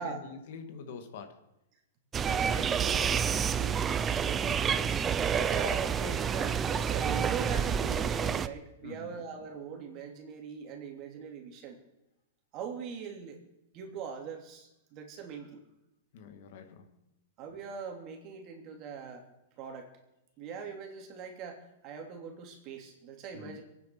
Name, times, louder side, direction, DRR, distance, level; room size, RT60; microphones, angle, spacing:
voice 1, 0.0-1.4 3.2-3.5 5.2-5.5 8.8-9.1 16.1-17.0 23.3-23.6, left 5 dB, 55° left, 7 dB, 2.1 m, -46 dB
sound 1, 2.1-8.5, right 7 dB, 20° right, 0.6 m, -29 dB
voice 2, 2.2-4.9 5.3-11.8 12.5-13.4 13.7-15.6 17.4-19.2 19.6-19.9 20.4-23.6, right 6 dB, 35° right, 3 dB, 3.0 m, -41 dB
22.5 x 9.4 x 6.1 m, 0.89 s
hypercardioid pair, 150°, 0 cm